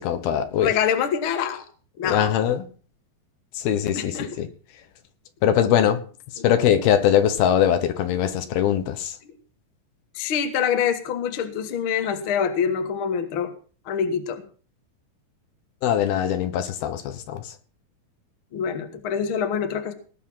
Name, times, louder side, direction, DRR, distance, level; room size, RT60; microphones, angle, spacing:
voice 1, 0.0-0.7 2.0-2.7 3.5-4.5 5.4-6.0 6.4-9.2 15.8-17.5, left 9 dB, 80° left, 9 dB, 3.2 m, -22 dB
voice 2, 0.5-1.6 2.0-2.3 3.9-4.3 6.4-6.5 10.1-13.5 13.8-14.4 18.5-19.9, left 7 dB, 55° left, 7 dB, 1.6 m, -25 dB
19.0 x 6.9 x 5.7 m, 0.41 s
omnidirectional pair, 4.3 m